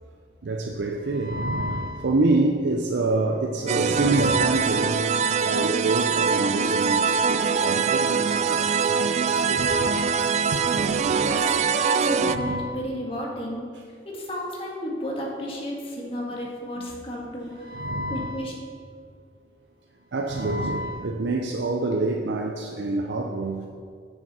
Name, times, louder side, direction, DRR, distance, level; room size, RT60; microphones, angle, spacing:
voice 1, 0.4-5.0 5.4-11.2 12.2-12.8 16.8-16.9 17.6-18.4 20.1-23.7, right 2 dB, 80° right, 2 dB, 0.6 m, -27 dB
sound 1, 3.7-12.4, right 6 dB, 40° right, 0.3 m, -23 dB
voice 2, 11.1-11.5 11.8-13.6 14.1-17.7 18.1-18.5, equal, 30° left, -2 dB, 1.8 m, -32 dB
10.5 x 6.9 x 4.3 m, 2.1 s
head